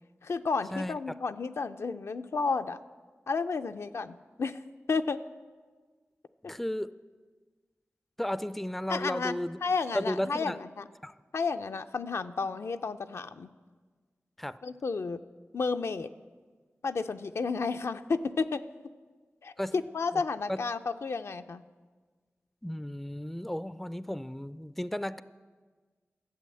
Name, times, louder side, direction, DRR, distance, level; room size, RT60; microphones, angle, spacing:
voice 1, 0.2-2.8 3.3-4.6 4.9-5.2 8.9-10.9 11.3-13.5 14.6-15.2 15.5-16.1 16.8-18.6 19.4-21.6, left 4 dB, 75° left, 9 dB, 0.4 m, -32 dB
voice 2, 6.4-6.9 8.2-9.6 9.9-10.6 11.0-11.1 14.4-14.6 19.6-19.7 20.1-20.2 20.5-20.6 22.6-25.2, left 1 dB, 5° left, 15 dB, 0.3 m, -34 dB
12.5 x 7.7 x 7.5 m, 1.5 s
wide cardioid pair, 65°, 5 cm